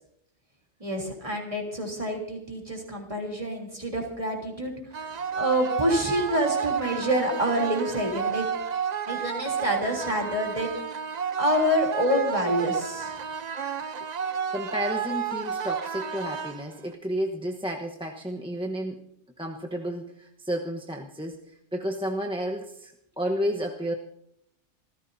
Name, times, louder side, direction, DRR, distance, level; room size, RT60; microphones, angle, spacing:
voice 1, 0.8-8.5 9.1-10.8 11.4-13.2, equal, 25° right, 0 dB, 3.5 m, -27 dB
sound 1, 4.9-16.9, right 7 dB, 45° right, 0.7 m, -31 dB
voice 2, 14.5-19.0 19.4-21.4 21.7-23.9, equal, 5° right, 1 dB, 1.0 m, -31 dB
27.0 x 15.0 x 2.8 m, 0.73 s
omnidirectional pair, 1.2 m